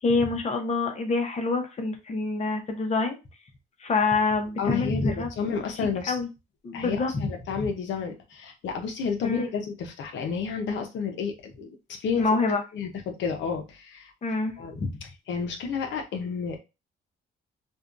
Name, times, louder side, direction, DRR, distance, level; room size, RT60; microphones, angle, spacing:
voice 1, 0.0-3.2 3.8-5.3 6.1-6.3 6.6-7.3 7.6-7.7 9.2-9.4 12.2-12.6 14.2-14.9, left 3 dB, 35° left, 4 dB, 0.7 m, -26 dB
voice 2, 4.6-6.2 6.7-12.3 12.7-14.1 14.6-14.7 15.3-16.6, left 6 dB, 70° left, 3 dB, 0.6 m, -31 dB
2.6 x 2.2 x 2.4 m, 0.26 s
cardioid pair, 90°, 20 cm